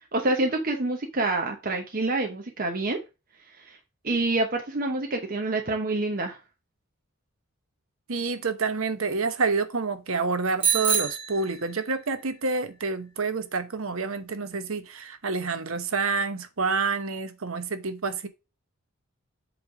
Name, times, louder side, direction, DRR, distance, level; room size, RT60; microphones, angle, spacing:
voice 1, 0.1-3.0 3.6-3.8 4.0-6.4, right 2 dB, 40° right, 0.9 m, -27 dB
voice 2, 8.1-18.3, right 4 dB, 70° right, 1.0 m, -28 dB
Bicycle bell, 10.6-12.2, right 7 dB, 25° right, 1.8 m, -27 dB
7.9 x 3.4 x 4.8 m
head